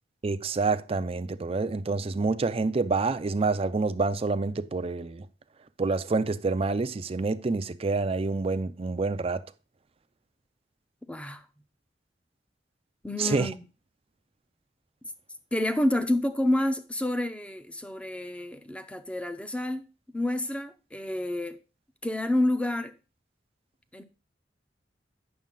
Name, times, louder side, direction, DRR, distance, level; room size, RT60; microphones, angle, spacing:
voice 1, 0.2-5.3 5.8-9.4 13.2-13.5, right 3 dB, 35° right, 0.5 m, -27 dB
voice 2, 11.1-11.4 13.0-13.6 15.5-19.9 20.1-21.6 22.0-22.9 23.9-24.0, left 1 dB, 5° left, 0.6 m, -29 dB
8.9 x 6.4 x 3.8 m
head